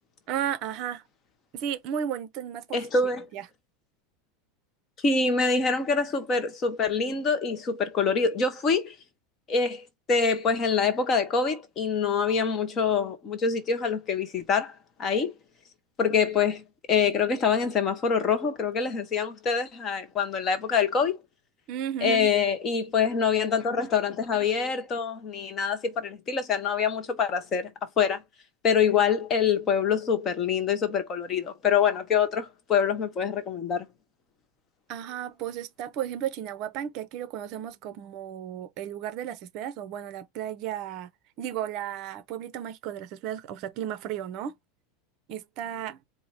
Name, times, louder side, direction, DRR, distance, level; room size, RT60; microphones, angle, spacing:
voice 1, 0.3-1.0 1.5-2.8 3.3-3.4 21.7-22.3 34.9-41.1 41.4-44.5 45.3-46.0, right 10 dB, 45° right, 0.7 m, -34 dB
voice 2, 2.7-3.3 5.0-8.9 9.5-14.7 15.0-15.3 16.0-16.6 16.9-21.2 22.0-28.2 28.6-33.9, left 6 dB, 25° left, 1.0 m, -25 dB
4.6 x 2.1 x 4.1 m
supercardioid pair, 155°, 0 cm